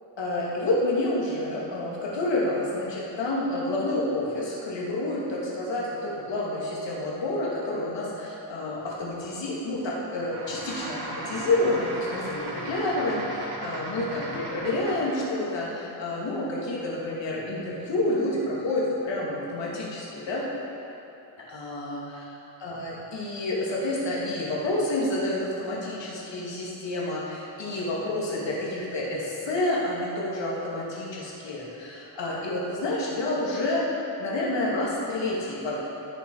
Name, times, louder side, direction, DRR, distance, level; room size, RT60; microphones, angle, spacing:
voice 1, 0.2-20.4 21.5-22.2 22.6-33.8 34.2-35.8, left 2 dB, 80° left, -5 dB, 2.6 m, -29 dB
sound 1, 10.3-15.3, right 2 dB, 65° right, 1.8 m, -36 dB
17.0 x 6.5 x 4.8 m, 3.0 s
wide cardioid pair, 110°, 43 cm